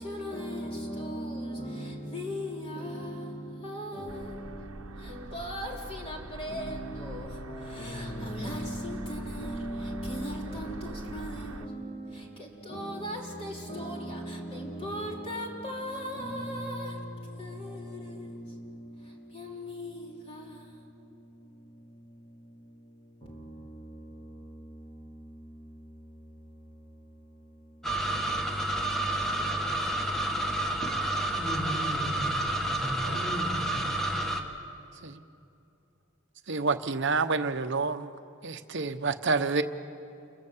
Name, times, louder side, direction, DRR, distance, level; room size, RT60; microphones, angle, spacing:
voice 1, 0.0-31.1, equal, 25° left, 3.3 m, -39 dB
sound 1, 4.1-11.7, right 2 dB, 85° right, 1.1 m, -43 dB
sound 2, 27.8-34.4, right 1 dB, ahead, 1.7 m, -30 dB
voice 2, 31.4-33.9, equal, 45° left, 5.1 m, -36 dB
voice 3, 36.5-38.1 38.4-39.6, right 4 dB, 55° right, 1.0 m, -28 dB
29.0 x 23.0 x 7.4 m
head